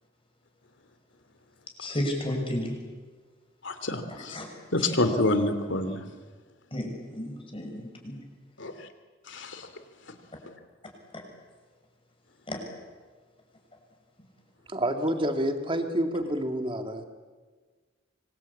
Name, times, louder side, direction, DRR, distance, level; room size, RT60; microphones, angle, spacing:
voice 1, 1.8-2.7 4.3-4.5 4.8-4.9 6.7-8.2 12.5-12.6, left 1 dB, 30° left, 2 dB, 6.7 m, -32 dB
voice 2, 3.6-4.4 4.7-6.0 8.6-8.7 9.3-9.7, left 2 dB, 65° left, 9 dB, 3.0 m, -27 dB
voice 3, 14.7-17.0, right 1 dB, 25° right, 6 dB, 2.3 m, -28 dB
26.0 x 25.5 x 8.6 m, 1.4 s
head